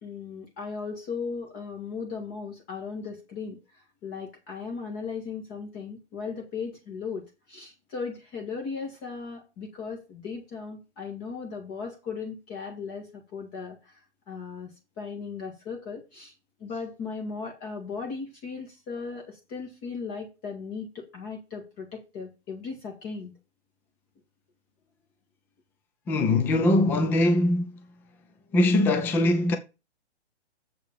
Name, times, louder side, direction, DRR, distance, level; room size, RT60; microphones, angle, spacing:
voice 1, 0.0-14.7 15.0-16.3 16.6-23.3, left 5 dB, 25° left, 2.0 m, -37 dB
voice 2, 26.1-27.8 28.5-29.6, left 1 dB, 5° left, 0.4 m, -22 dB
7.3 x 4.8 x 7.1 m
hypercardioid pair, 140°, 34 cm